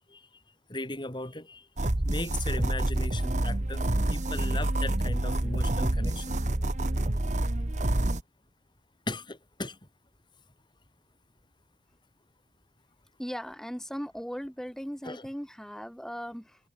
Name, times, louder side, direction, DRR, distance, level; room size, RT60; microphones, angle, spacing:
voice 1, 0.7-6.4 9.1-9.8 15.0-15.3, left 2 dB, 25° left, 4.5 m, -37 dB
sound 1, 1.8-8.2, right 1 dB, 40° right, 1.4 m, -28 dB
voice 2, 13.2-16.6, equal, 5° left, 5.5 m, -38 dB
head